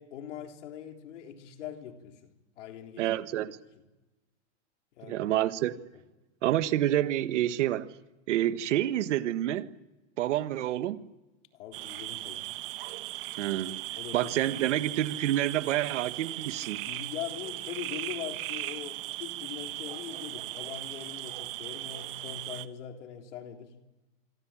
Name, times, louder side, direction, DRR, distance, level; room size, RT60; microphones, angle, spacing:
voice 1, 0.0-3.1 5.0-5.3 11.5-12.5 13.5-13.6 14.0-14.9 16.9-23.7, left 9 dB, 90° left, 3.7 m, -42 dB
voice 2, 3.0-3.6 5.0-5.8 6.4-7.9 8.3-9.7 10.2-11.1 13.4-13.8 14.1-16.9, right 13 dB, 85° right, 1.5 m, -28 dB
sound 1, 11.7-22.7, right 17 dB, 50° right, 1.1 m, -38 dB
27.0 x 22.0 x 8.9 m
supercardioid pair, 175°, 35 cm